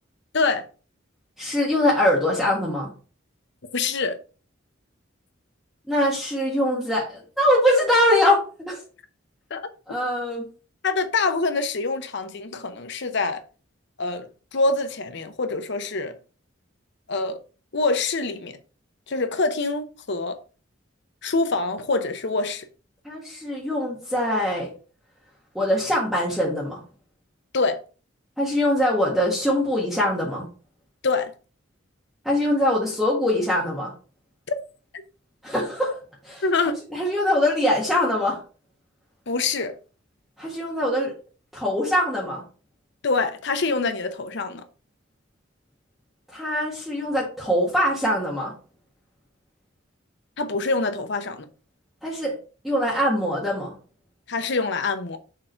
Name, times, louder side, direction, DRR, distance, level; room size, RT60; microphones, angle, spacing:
voice 1, 1.4-2.9 5.9-8.8 9.9-10.5 23.1-24.7 25.6-26.8 28.4-30.5 32.2-33.9 35.4-36.0 36.2-36.4 36.9-38.4 40.4-41.1 41.5-42.4 46.3-48.5 52.0-52.3 52.6-53.7, left 1 dB, ahead, 1.6 m, -23 dB
voice 2, 3.7-4.2 9.5-9.6 10.8-13.4 14.0-14.3 14.5-16.1 17.1-17.4 17.7-18.6 19.1-20.4 21.2-22.7 27.5-27.8 31.0-31.3 36.4-36.8 39.3-39.7 43.0-44.6 50.4-51.5 54.3-55.2, left 3 dB, 60° left, 0.8 m, -25 dB
6.6 x 3.7 x 4.4 m
head